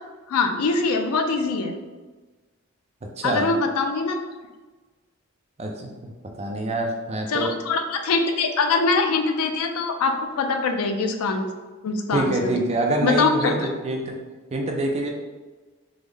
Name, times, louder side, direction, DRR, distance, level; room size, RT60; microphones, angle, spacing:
voice 1, 0.3-1.7 3.2-4.2 7.3-11.5 11.8-12.5 13.0-13.5, left 4 dB, 90° left, 6 dB, 0.4 m, -23 dB
voice 2, 3.2-3.5 5.6-6.1 6.4-7.5 12.1-14.2 14.5-15.1, right 2 dB, 30° right, 1 dB, 0.4 m, -26 dB
3.7 x 2.0 x 3.2 m, 1.3 s
head